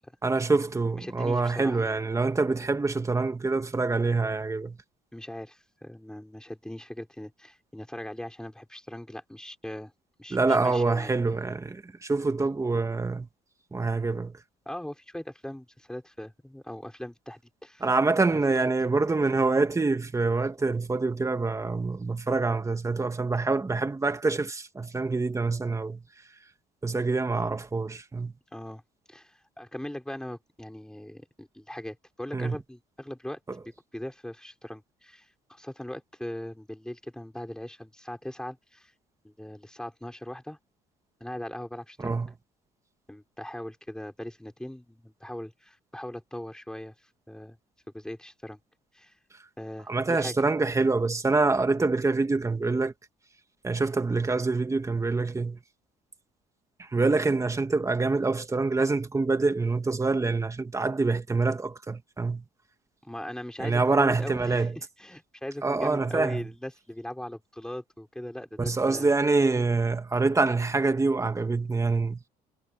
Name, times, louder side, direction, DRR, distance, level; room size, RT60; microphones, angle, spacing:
voice 1, 0.2-4.8 10.3-13.3 13.7-14.4 17.8-26.0 26.8-28.3 32.3-32.6 33.5-33.6 42.0-42.3 49.9-52.9 53.6-55.6 56.8-62.4 63.6-64.8 65.6-66.5 68.6-72.2, right 3 dB, 20° right, 2.2 m, -26 dB
voice 2, 1.0-1.8 5.1-9.9 10.2-11.1 14.6-17.9 18.3-18.4 28.5-28.8 29.1-33.4 33.6-38.9 39.2-40.6 41.2-42.2 43.1-46.9 47.3-47.6 47.9-48.6 48.9-49.1 49.6-50.4 63.0-64.7 65.0-69.1, left 1 dB, 5° left, 6.4 m, -40 dB
cardioid pair, 110°, 17 cm